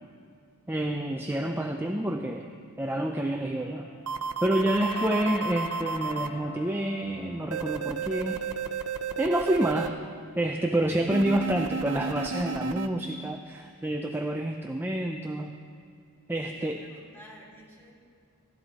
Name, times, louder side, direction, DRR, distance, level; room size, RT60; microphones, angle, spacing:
voice 1, 0.7-2.5 2.8-3.9 4.4-8.4 9.2-10.0 10.4-15.6 16.3-16.8, right 1 dB, 10° right, 3 dB, 0.5 m, -28 dB
sound 1, 3.5-12.1, left 4 dB, 70° left, 2.5 m, -46 dB
sound 2, 4.1-6.3 7.5-9.9 11.1-12.9, right 6 dB, 85° right, 0.6 m, -32 dB
voice 2, 16.3-17.9, equal, 10° left, -5 dB, 3.3 m, -51 dB
16.0 x 12.5 x 4.1 m, 2.4 s
head